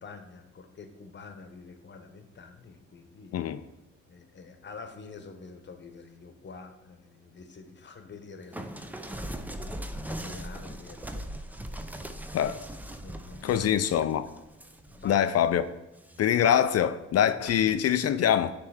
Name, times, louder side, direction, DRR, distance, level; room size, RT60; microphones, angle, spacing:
voice 1, 0.0-3.4 4.1-12.0 12.3-12.4 13.0-13.7 14.9-15.3, left 4 dB, 35° left, 1.0 m, -47 dB
sound 1, 8.5-15.5 16.0-16.6 17.5-17.8, right 1 dB, 5° right, 0.5 m, -40 dB
voice 2, 13.4-14.3 15.0-15.6 16.2-18.5, left 9 dB, 55° left, 0.4 m, -24 dB
9.6 x 3.3 x 4.9 m
cardioid pair, 90°, 30 cm